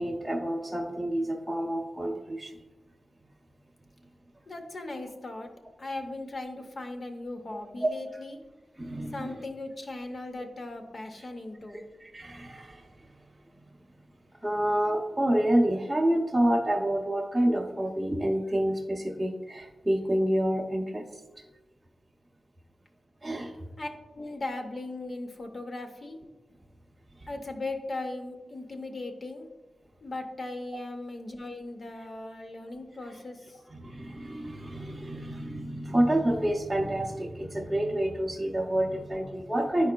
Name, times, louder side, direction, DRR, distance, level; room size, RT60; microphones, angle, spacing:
voice 1, 0.0-2.5 7.8-7.9 8.8-9.3 12.1-12.8 14.4-21.0 23.2-23.5 30.7-30.8 33.7-39.9, right 1 dB, 10° right, -4 dB, 0.6 m, -28 dB
voice 2, 4.5-5.5 5.8-8.4 9.1-11.8 23.8-23.9 24.1-26.2 27.3-29.5 30.0-33.6, left 2 dB, 45° left, 5 dB, 0.7 m, -38 dB
10.5 x 4.7 x 2.2 m, 1.2 s
wide cardioid pair, 130°, 0 cm